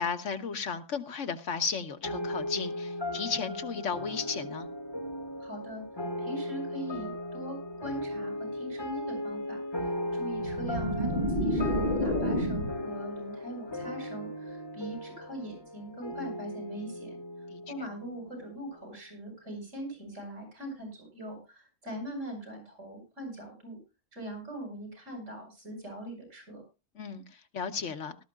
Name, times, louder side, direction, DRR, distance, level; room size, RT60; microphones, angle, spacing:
voice 1, 0.0-4.7 17.5-17.6 27.0-27.2 27.5-28.2, left 5 dB, 75° left, 8 dB, 1.4 m, -34 dB
sound 1, 2.0-18.8, left 1 dB, 20° left, 2.2 m, -37 dB
voice 2, 5.4-5.8 6.2-7.6 7.8-17.2 17.7-23.8 24.1-26.6, right 1 dB, 80° right, 2 dB, 8.2 m, -41 dB
sound 2, 10.4-12.9, equal, 35° right, 3.7 m, -29 dB
18.5 x 13.0 x 2.5 m, 0.29 s
omnidirectional pair, 1.3 m